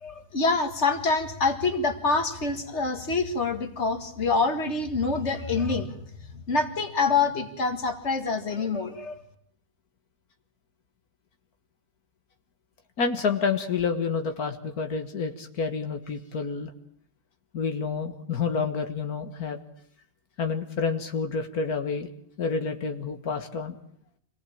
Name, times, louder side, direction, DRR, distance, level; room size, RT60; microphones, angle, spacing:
voice 1, 0.0-6.0 6.3-9.2, left 4 dB, 50° left, 7 dB, 2.4 m, -26 dB
voice 2, 13.0-16.7 17.5-19.6 20.4-22.1 22.4-23.8, left 5 dB, 85° left, 6 dB, 2.1 m, -29 dB
26.5 x 18.0 x 8.8 m, 0.66 s
omnidirectional pair, 1.5 m